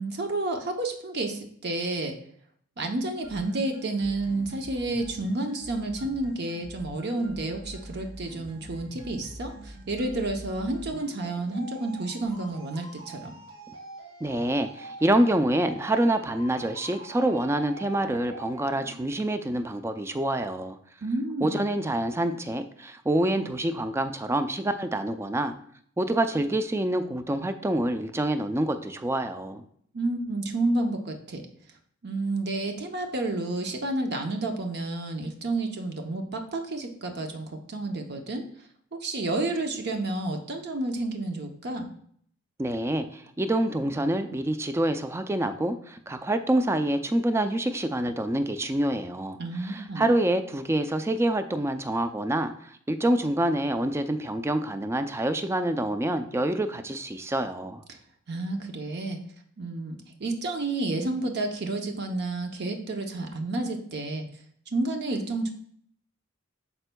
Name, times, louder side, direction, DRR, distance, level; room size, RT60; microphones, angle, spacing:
voice 1, 0.0-2.2 2.8-13.3 21.0-21.6 29.9-31.4 32.0-38.4 38.9-41.9 49.4-50.0 57.9-58.0 58.3-59.2 59.6-64.3 64.7-65.5, right 2 dB, 55° right, 4 dB, 0.7 m, -30 dB
sound 1, 3.2-19.2, right 1 dB, 90° right, 2.7 m, -45 dB
voice 2, 14.2-20.8 21.4-25.5 26.0-29.6 42.6-57.8, right 1 dB, 10° right, 8 dB, 0.4 m, -27 dB
11.0 x 4.4 x 2.2 m, 0.62 s
head